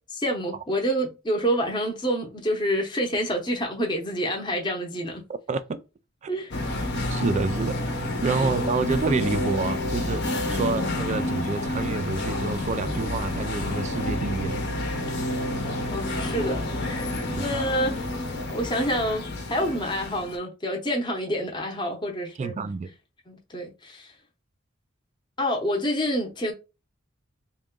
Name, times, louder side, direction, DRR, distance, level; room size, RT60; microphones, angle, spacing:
voice 1, 0.1-5.2 6.3-6.5 8.4-8.5 15.9-17.0 17.4-18.0 18.5-22.5 23.3-24.1 25.4-26.5, equal, 20° left, 0.7 m, -27 dB
voice 2, 5.5-5.8 6.2-6.3 6.9-7.8 8.2-10.2 10.5-14.6 17.3-17.5 22.4-22.9, right 4 dB, 35° right, 0.3 m, -28 dB
sound 1, 6.5-20.4, left 1 dB, 55° left, 0.8 m, -29 dB
3.5 x 2.2 x 3.6 m
head